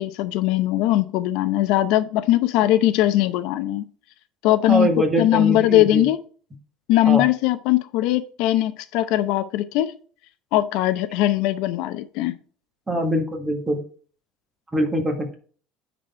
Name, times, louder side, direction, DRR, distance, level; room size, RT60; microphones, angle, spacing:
voice 1, 0.0-3.8 4.4-4.9 5.2-6.2 6.9-9.9 10.5-12.3, left 14 dB, 65° left, 12 dB, 0.7 m, -20 dB
voice 2, 4.7-6.1 7.0-7.3 12.9-13.8 14.7-15.4, right 1 dB, 10° right, 4 dB, 1.7 m, -23 dB
9.6 x 4.2 x 4.2 m, 0.42 s
cardioid pair, 150°, 0 cm